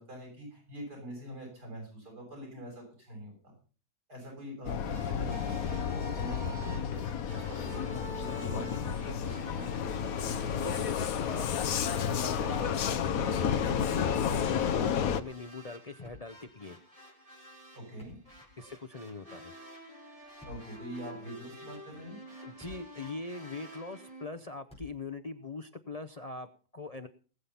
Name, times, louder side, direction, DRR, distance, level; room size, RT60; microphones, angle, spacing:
voice 1, 0.0-3.5 4.1-10.0 11.9-12.2 17.9-18.2 20.4-22.2, equal, 90° right, 0 dB, 7.2 m, -44 dB
Vehicle, 4.6-15.2, left 8 dB, 65° left, 1.2 m, -31 dB
sound 1, 4.9-24.3, right 1 dB, 20° right, 3.2 m, -48 dB
voice 2, 10.2-11.5 11.8-16.8 18.6-19.5 22.4-27.1, left 3 dB, 40° left, 8 dB, 0.6 m, -42 dB
Thump thud, 16.0-16.6 17.8-18.8 20.2-20.8 21.6-21.7 22.3-23.1 23.3-23.4 24.7-25.1, left 3 dB, 5° left, 5.2 m, -53 dB
19.5 x 7.6 x 5.5 m, 0.39 s
omnidirectional pair, 1.7 m